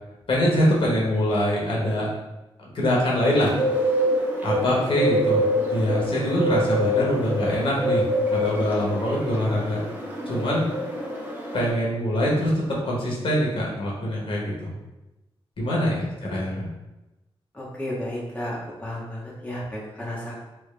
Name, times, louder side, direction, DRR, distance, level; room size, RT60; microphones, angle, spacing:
voice 1, 0.3-2.1 2.6-3.5 4.4-5.4 5.7-8.0 8.3-9.8 10.3-10.6 11.5-12.5 12.8-14.7 15.6-16.7, left 1 dB, 65° left, -4 dB, 1.2 m, -24 dB
Bird, 3.4-11.7, equal, 20° right, 0.8 m, -26 dB
voice 2, 17.5-20.4, left 1 dB, 15° left, -6 dB, 0.9 m, -33 dB
3.4 x 3.0 x 3.3 m, 1.0 s
wide cardioid pair, 100°, 10 cm